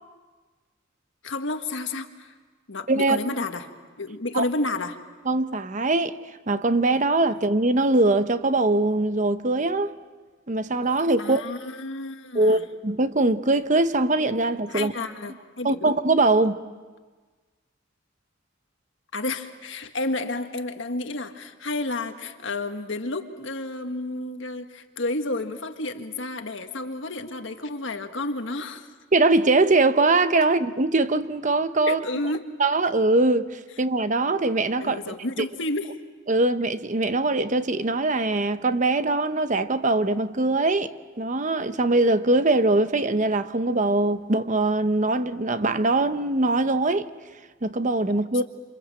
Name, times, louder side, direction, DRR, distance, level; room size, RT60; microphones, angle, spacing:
voice 1, 1.2-2.3 2.7-3.7 4.0-5.0 11.2-12.6 14.7-15.9 19.1-28.9 31.9-32.5 34.8-36.0, left 2 dB, 65° left, 1.7 m, -31 dB
voice 2, 5.3-6.2 6.5-9.9 10.5-11.4 12.3-14.9 15.6-16.6 29.1-32.0 32.6-35.0 35.4-35.5 36.3-47.1 47.6-48.4, right 2 dB, 40° right, 0.9 m, -22 dB
28.0 x 27.5 x 7.6 m
head